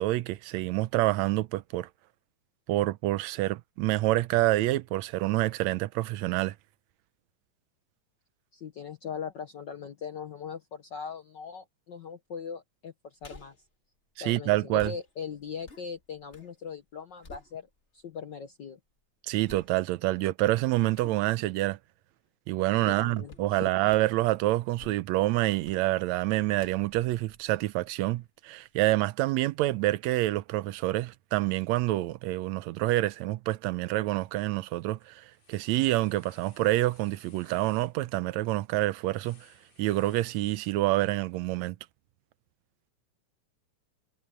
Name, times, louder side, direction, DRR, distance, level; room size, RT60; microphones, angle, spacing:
voice 1, 0.0-1.9 2.7-6.5 14.2-14.9 19.3-21.8 22.5-39.5 39.8-41.8, right 17 dB, 75° right, 1.8 m, -27 dB
voice 2, 8.5-13.5 14.2-17.7 17.9-18.8 22.8-23.7, left 7 dB, 80° left, 1.0 m, -40 dB
sound 1, 13.2-13.7 14.8-16.5 16.9-18.0 18.5-18.6 19.4-20.1 20.9-21.3 23.3-23.5 23.9-24.2 24.6-25.2 25.6-25.9 26.6-28.3 28.6-28.7, left 2 dB, 25° left, 2.2 m, -51 dB
sound 2, 34.1-34.5 34.8-41.3, left 4 dB, 55° left, 5.7 m, -62 dB
omnidirectional pair, 3.5 m